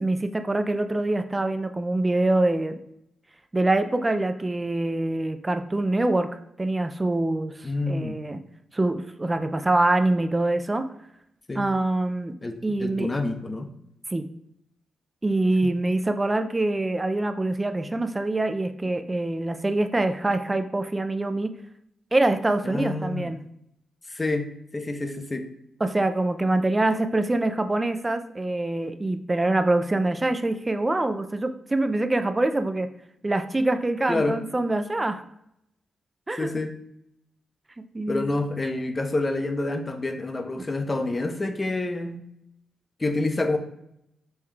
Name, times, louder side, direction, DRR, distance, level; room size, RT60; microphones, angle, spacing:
voice 1, 0.0-2.8 3.5-8.4 8.7-10.8 11.6-12.3 12.6-13.1 14.1-14.3 15.2-21.5 22.1-23.4 25.8-32.9 33.2-35.2 36.3-36.5 37.9-38.3, right 2 dB, 20° right, 9 dB, 0.4 m, -25 dB
voice 2, 7.6-8.2 11.5-11.7 12.4-13.7 15.6-15.7 22.6-23.3 24.1-24.5 24.7-25.4 34.1-34.4 36.4-36.7 38.1-42.2 43.0-43.6, left 2 dB, 25° left, 6 dB, 0.6 m, -28 dB
5.4 x 2.3 x 3.2 m, 0.78 s
cardioid pair, 80°, 0 cm